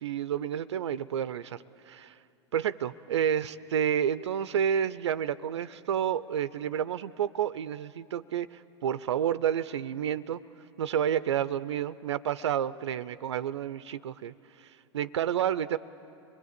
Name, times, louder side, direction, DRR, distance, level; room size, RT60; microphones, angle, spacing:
voice 1, 0.0-2.1 2.5-10.4 10.8-15.8, right 9 dB, 75° right, 16 dB, 0.5 m, -30 dB
25.5 x 20.0 x 8.1 m, 2.7 s
hypercardioid pair, 95°, 15 cm